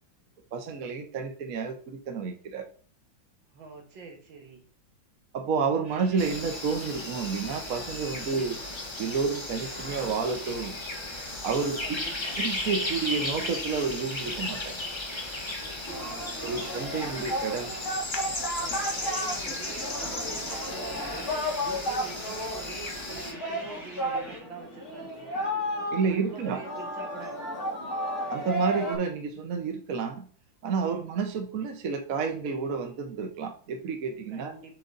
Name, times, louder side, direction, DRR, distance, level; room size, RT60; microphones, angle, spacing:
voice 1, 0.5-2.6 5.3-8.6 9.0-10.8 11.4-11.8 12.4-14.8 16.4-17.7 25.9-26.6 28.3-30.3 30.6-34.5, right 5 dB, 50° right, 5 dB, 1.2 m, -30 dB
voice 2, 3.5-4.6 11.8-12.4 15.6-16.7 17.0-17.3 18.6-25.6 26.1-27.4 30.8-31.1 34.3-34.8, right 4 dB, 70° right, 1 dB, 2.3 m, -45 dB
sound 1, 5.8-24.4, equal, 20° right, 2.3 m, -48 dB
sound 2, 6.2-23.3, left 2 dB, 20° left, 0.8 m, -35 dB
Singing, 15.9-29.0, equal, 45° left, 3.6 m, -33 dB
7.7 x 3.9 x 3.9 m, 0.43 s
omnidirectional pair, 2.2 m